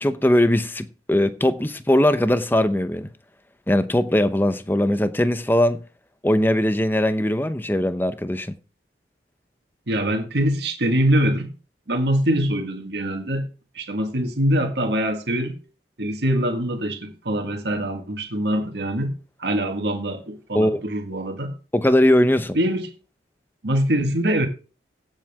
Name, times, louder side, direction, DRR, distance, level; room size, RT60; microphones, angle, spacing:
voice 1, 0.0-3.1 3.7-5.8 6.2-8.5 20.5-20.8 21.7-22.6, left 1 dB, 10° left, 0.7 m, -20 dB
voice 2, 9.9-11.5 11.9-13.5 13.7-15.6 16.0-19.1 19.4-21.5 22.5-22.9 23.6-24.5, right 1 dB, 70° right, 1.7 m, -23 dB
16.0 x 7.6 x 3.6 m
head